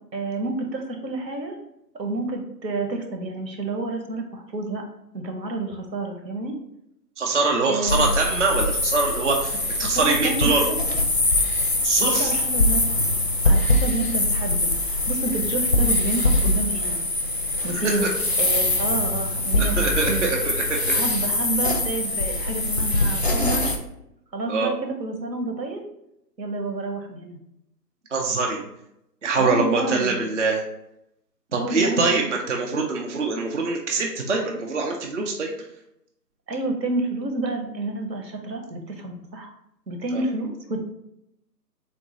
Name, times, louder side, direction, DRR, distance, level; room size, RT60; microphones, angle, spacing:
voice 1, 0.1-1.6 2.0-4.8 5.1-6.6 7.7-8.1 9.9-10.8 12.0-12.9 13.4-17.0 17.6-20.3 20.9-23.8 24.3-25.8 26.4-27.4 29.3-30.2 31.5-32.3 36.5-39.5 39.9-40.8, right 2 dB, 80° right, 4 dB, 1.1 m, -29 dB
voice 2, 7.2-10.7 11.8-12.4 17.7-18.1 19.6-21.0 24.5-24.7 28.1-28.6 29.2-30.6 31.5-35.5 40.1-40.2, right 3 dB, 50° right, 0 dB, 0.5 m, -24 dB
sound 1, 7.9-23.8, left 1 dB, 45° left, 0.4 m, -23 dB
3.9 x 2.5 x 3.8 m, 0.80 s
figure-of-eight pair, 155°, 50 cm